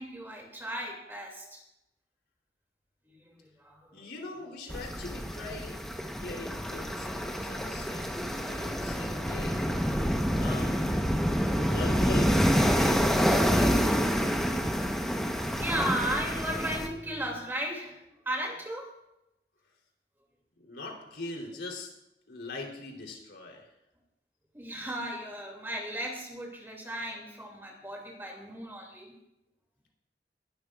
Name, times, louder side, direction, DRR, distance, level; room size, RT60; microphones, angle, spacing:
voice 1, 0.0-1.6 3.1-4.1 10.6-10.7 15.5-18.0 18.2-18.9 24.5-29.2, right 1 dB, 15° right, 0 dB, 2.7 m, -36 dB
voice 2, 3.9-5.8 6.2-9.8 10.4-10.8 11.6-14.4 20.6-21.9 22.3-23.7, left 2 dB, 80° left, 0 dB, 3.7 m, -41 dB
sound 1, 4.7-16.9, equal, 5° left, 1.1 m, -27 dB
sound 2, 11.3-17.5, equal, 40° right, 4.4 m, -47 dB
21.5 x 12.5 x 2.5 m, 0.87 s
head